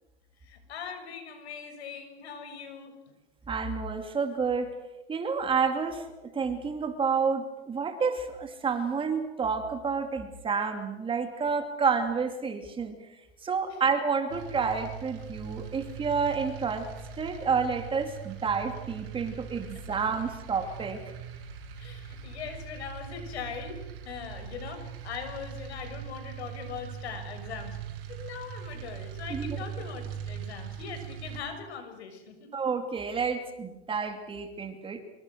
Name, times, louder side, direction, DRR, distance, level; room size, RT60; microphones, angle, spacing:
voice 1, 0.4-3.1 21.8-27.8 28.1-32.5, left 6 dB, 85° left, 7 dB, 6.8 m, -41 dB
voice 2, 3.5-4.7 5.1-6.0 6.3-13.0 13.4-16.9 17.2-21.0 29.3-29.6 32.5-35.0, right 5 dB, 15° right, 6 dB, 2.7 m, -29 dB
sound 1, 14.3-31.4, right 8 dB, 60° right, 7.1 m, -41 dB
25.5 x 24.5 x 6.5 m, 1.0 s
supercardioid pair, 140°, 31 cm